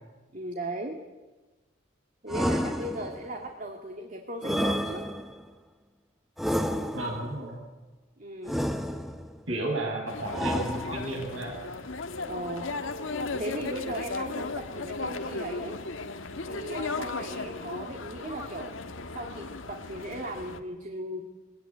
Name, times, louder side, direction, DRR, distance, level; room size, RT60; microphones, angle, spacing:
voice 1, 0.3-1.0 2.2-5.1 8.2-8.7 12.2-12.7 13.4-15.8 16.5-18.8 19.1-21.2, right 1 dB, 40° right, 3 dB, 2.0 m, -37 dB
sound 1, 2.3-3.3 4.4-5.5 6.4-7.3 8.5-9.4 10.3-11.3, equal, ahead, 1.0 m, -30 dB
voice 2, 6.9-7.6 9.5-11.6, right 1 dB, 80° right, -1 dB, 6.4 m, -33 dB
sound 2, 10.1-20.6, left 3 dB, 75° left, 1.4 m, -36 dB
21.5 x 18.0 x 9.6 m, 1.2 s
head